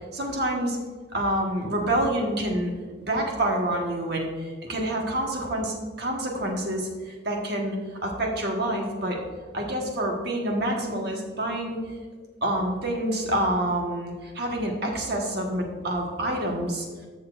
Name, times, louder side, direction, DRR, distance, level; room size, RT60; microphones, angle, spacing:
voice 1, 0.1-0.8 1.1-2.7 3.1-9.2 9.5-11.8 12.4-16.9, right 1 dB, 55° right, 0 dB, 1.4 m, -27 dB
14.0 x 7.1 x 2.5 m, 1.4 s
head